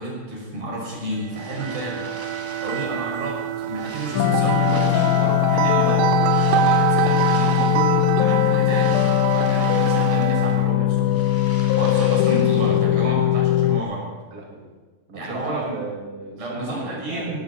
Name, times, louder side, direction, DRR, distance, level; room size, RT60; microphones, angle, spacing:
voice 1, 0.0-2.1 2.6-3.4 3.7-9.0 9.3-11.2 11.8-14.1 15.1-15.7 16.4-17.4, right 2 dB, 60° right, -4 dB, 7.6 m, -31 dB
sound 1, 1.0-3.0 3.5-5.5 6.1-8.0 8.4-10.6 10.9-12.8, equal, 10° right, 1.7 m, -42 dB
sound 2, 1.3-10.8, right 12 dB, 85° right, 2.5 m, -25 dB
sound 3, 4.1-13.8, left 14 dB, 90° left, 2.3 m, -20 dB
voice 2, 14.3-14.7 15.1-17.4, right 2 dB, 30° right, -1 dB, 2.2 m, -35 dB
19.0 x 16.5 x 4.3 m, 1.3 s
omnidirectional pair, 4.0 m